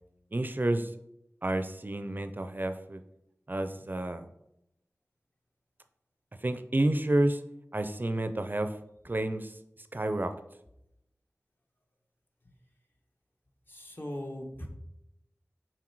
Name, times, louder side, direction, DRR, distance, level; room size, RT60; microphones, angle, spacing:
voice 1, 0.3-0.9 1.4-3.0 3.5-4.3 6.4-7.4 7.7-8.7 9.0-9.5 9.9-10.3, right 1 dB, 40° right, 9 dB, 0.4 m, -29 dB
voice 2, 13.7-14.7, left 1 dB, 40° left, 2 dB, 1.2 m, -39 dB
5.9 x 4.4 x 4.6 m, 0.82 s
wide cardioid pair, 60°, 5 cm